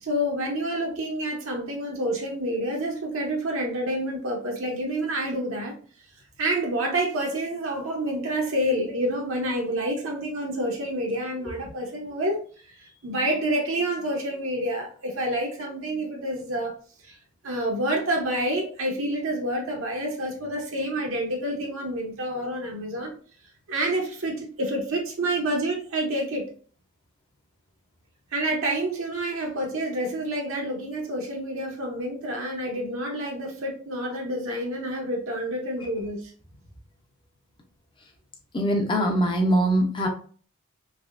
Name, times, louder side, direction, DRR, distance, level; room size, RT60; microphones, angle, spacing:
voice 1, 0.0-5.7 6.4-16.7 17.0-17.1 17.4-23.1 23.7-26.5 28.3-36.3, right 1 dB, 60° right, 0 dB, 0.7 m, -28 dB
voice 2, 38.5-40.1, right 1 dB, 20° left, 2 dB, 0.6 m, -22 dB
3.4 x 3.0 x 2.4 m, 0.43 s
head